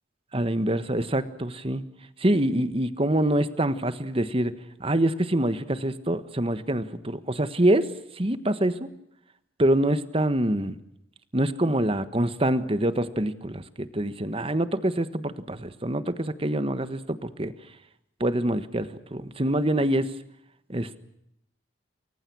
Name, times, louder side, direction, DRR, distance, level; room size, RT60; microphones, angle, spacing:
voice 1, 0.3-1.8 2.2-4.5 4.8-8.9 9.6-10.8 11.3-17.5 18.2-20.1 20.7-21.0, right 1 dB, 30° right, 12 dB, 1.5 m, -25 dB
29.5 x 23.0 x 6.3 m, 0.77 s
head